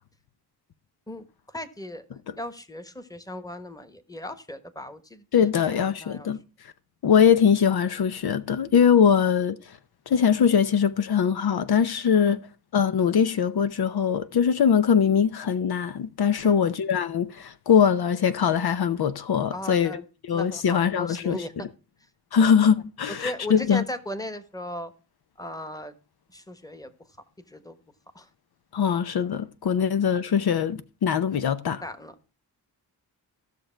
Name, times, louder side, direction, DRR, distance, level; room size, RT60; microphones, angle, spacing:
voice 1, 1.5-2.0 2.4-6.3 12.1-12.4 16.4-16.6 19.5-20.0 20.3-21.5 22.4-22.5 23.2-24.9 25.4-25.9 26.3-26.9 27.5-27.8 28.1-28.3 31.7-32.1, left 1 dB, 10° left, 1.3 m, -37 dB
voice 2, 5.3-6.4 7.0-9.8 10.1-12.4 12.7-21.4 22.3-23.8 28.7-31.8, left 7 dB, 70° left, 0.8 m, -22 dB
15.0 x 6.8 x 4.5 m
wide cardioid pair, 100°, 39 cm